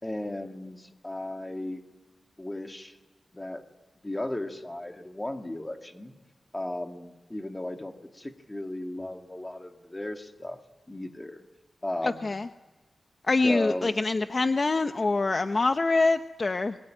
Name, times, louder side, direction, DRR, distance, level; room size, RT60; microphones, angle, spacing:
voice 1, 0.0-1.8 2.4-3.0 3.3-3.6 4.0-6.1 6.5-10.6 10.9-11.4 11.8-12.3 13.4-14.0, left 1 dB, 15° left, 5 dB, 2.2 m, -35 dB
voice 2, 12.0-12.5 13.3-16.8, left 3 dB, 40° left, 8 dB, 0.8 m, -25 dB
28.5 x 22.5 x 9.1 m, 1.2 s
wide cardioid pair, 105°, 0 cm